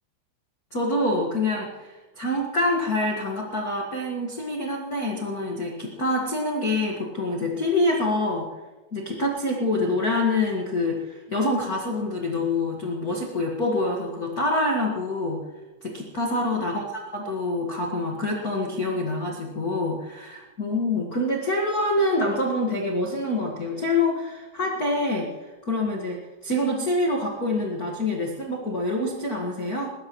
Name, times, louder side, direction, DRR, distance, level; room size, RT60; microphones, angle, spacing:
voice 1, 0.7-8.5 8.9-15.5 15.8-25.3 25.6-29.9, left 2 dB, 45° left, -1 dB, 1.2 m, -26 dB
21.0 x 17.5 x 3.1 m, 1.2 s
omnidirectional pair, 4.4 m